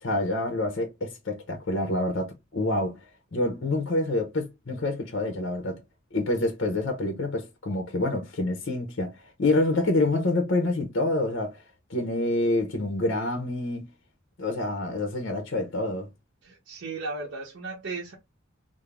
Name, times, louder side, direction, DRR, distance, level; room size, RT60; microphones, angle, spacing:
voice 1, 0.0-3.0 3.3-5.8 6.1-11.6 11.9-13.9 14.4-16.1, left 2 dB, 60° left, 0.8 m, -27 dB
voice 2, 16.4-18.2, right 3 dB, 65° right, 0.7 m, -35 dB
3.6 x 2.0 x 3.4 m
head